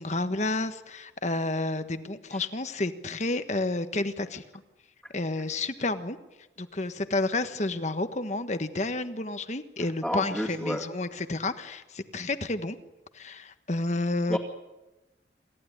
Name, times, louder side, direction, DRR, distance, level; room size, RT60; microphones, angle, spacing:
voice 1, 0.0-4.4 5.1-6.2 6.6-12.8 13.1-14.4, left 2 dB, 40° left, 9 dB, 1.4 m, -30 dB
voice 2, 10.0-10.8 14.3-14.4, equal, ahead, -4 dB, 2.3 m, -30 dB
27.5 x 15.0 x 10.0 m, 1.1 s
head